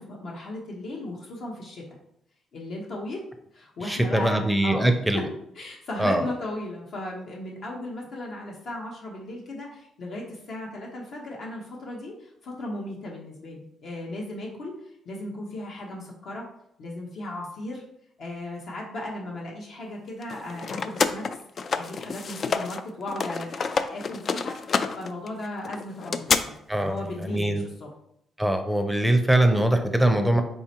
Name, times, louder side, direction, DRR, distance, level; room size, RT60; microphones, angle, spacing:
voice 1, 0.0-1.8 2.5-3.2 3.5-4.9 5.1-5.2 5.5-16.5 16.8-17.8 18.2-21.4 21.7-24.6 24.9-27.9, left 1 dB, 65° left, -2 dB, 0.9 m, -36 dB
voice 2, 3.8-5.3 6.0-6.2 26.7-27.0 27.3-27.6 28.4-30.4, right 1 dB, ahead, 5 dB, 0.6 m, -22 dB
sound 1, 20.2-22.8 23.1-26.4, left 5 dB, 45° left, 0.3 m, -28 dB
4.7 x 3.3 x 2.9 m, 0.74 s
cardioid pair, 90°, 0 cm